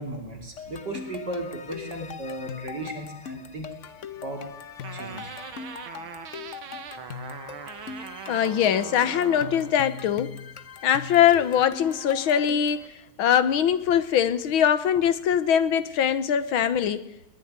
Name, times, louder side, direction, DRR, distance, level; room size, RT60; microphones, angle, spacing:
voice 1, 0.0-3.7 4.2-4.5 4.9-5.3, right 1 dB, 55° right, 3 dB, 3.7 m, -35 dB
sound 1, 0.6-12.9, left 7 dB, 45° left, 1.1 m, -40 dB
sound 2, 4.8-9.8, right 9 dB, 75° right, 2.1 m, -41 dB
voice 2, 8.3-10.4 10.8-12.9 13.2-17.1, left 9 dB, 75° left, 14 dB, 1.9 m, -22 dB
20.5 x 19.0 x 9.6 m, 0.83 s
omnidirectional pair, 2.3 m